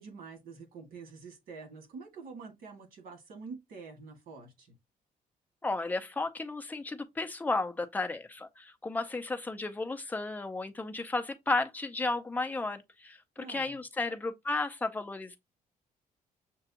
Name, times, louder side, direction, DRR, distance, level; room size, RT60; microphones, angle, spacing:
voice 1, 0.0-4.7 13.4-13.8, right 4 dB, 75° right, 2.0 m, -47 dB
voice 2, 5.6-15.4, left 3 dB, 10° left, 0.5 m, -33 dB
6.7 x 2.3 x 2.8 m
cardioid pair, 165°, 15 cm